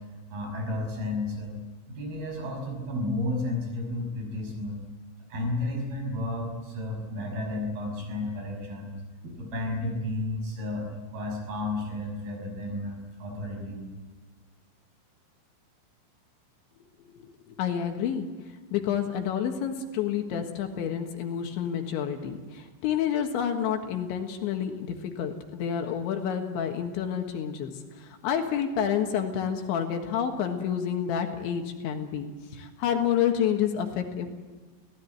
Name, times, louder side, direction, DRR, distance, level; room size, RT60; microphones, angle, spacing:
voice 1, 0.3-1.5 1.9-4.8 5.3-9.0 9.4-13.9, left 2 dB, 50° right, 1 dB, 7.6 m, -32 dB
voice 2, 17.2-18.3 18.7-34.3, left 8 dB, 70° left, 4 dB, 3.7 m, -29 dB
26.0 x 17.0 x 9.4 m, 1.4 s
omnidirectional pair, 5.7 m